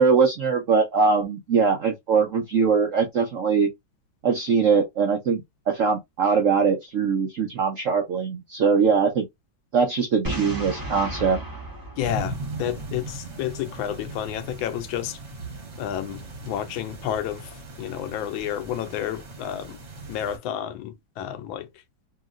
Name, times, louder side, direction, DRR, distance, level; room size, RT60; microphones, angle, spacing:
voice 1, 0.0-3.7 4.2-9.3 9.7-11.4, right 5 dB, 75° right, 0.7 m, -22 dB
Boom, 10.2-13.1, right 1 dB, 20° right, 0.6 m, -34 dB
voice 2, 12.0-15.2 15.8-17.5 17.8-19.8 20.1-21.7, left 10 dB, 85° left, 1.4 m, -30 dB
sound 1, 12.0-20.4, right 2 dB, 45° right, 1.1 m, -38 dB
2.9 x 2.8 x 2.4 m
omnidirectional pair, 2.1 m